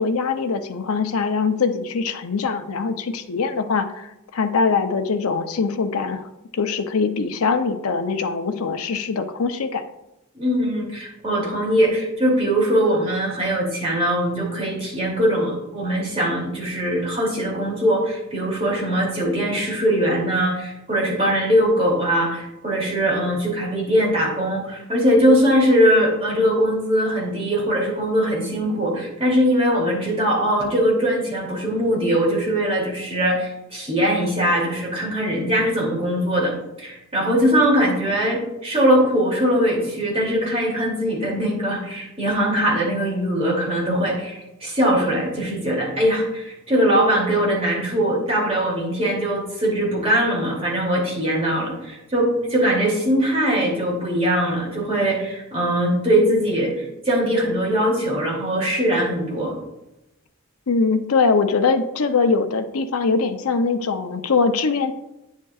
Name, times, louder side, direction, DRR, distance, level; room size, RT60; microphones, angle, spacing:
voice 1, 0.0-4.1 4.3-6.2 6.5-9.8 60.7-64.9, left 4 dB, 75° left, 7 dB, 0.6 m, -22 dB
voice 2, 10.3-36.5 36.8-59.5, equal, 30° right, -4 dB, 2.7 m, -21 dB
9.6 x 7.4 x 2.4 m, 0.92 s
head